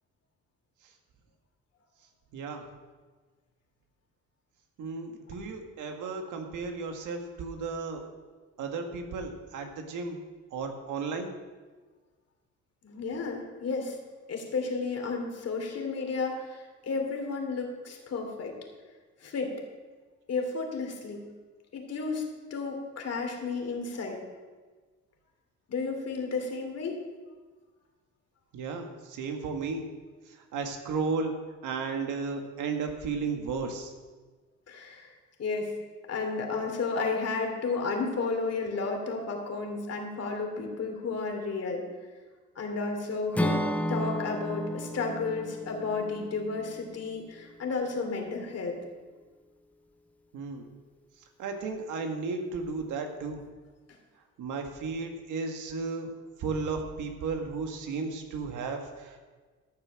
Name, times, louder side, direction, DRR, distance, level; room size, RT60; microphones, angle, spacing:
voice 1, 2.3-2.6 4.8-8.0 8.6-10.2 10.5-11.3 28.5-29.8 30.5-31.3 31.6-33.9 50.3-50.7 51.4-53.4 54.4-56.1 56.4-59.2, right 4 dB, 85° right, 4 dB, 1.7 m, -34 dB
voice 2, 12.8-14.0 14.3-18.5 19.2-19.5 20.3-21.2 21.7-24.2 25.7-27.0 34.7-35.1 35.4-35.7 36.1-41.8 42.5-43.6 43.9-48.8, left 4 dB, 55° left, 2 dB, 2.8 m, -32 dB
Acoustic guitar / Strum, 43.3-47.5, equal, 5° left, 0.6 m, -33 dB
13.5 x 6.9 x 6.3 m, 1.4 s
cardioid pair, 90°, 30 cm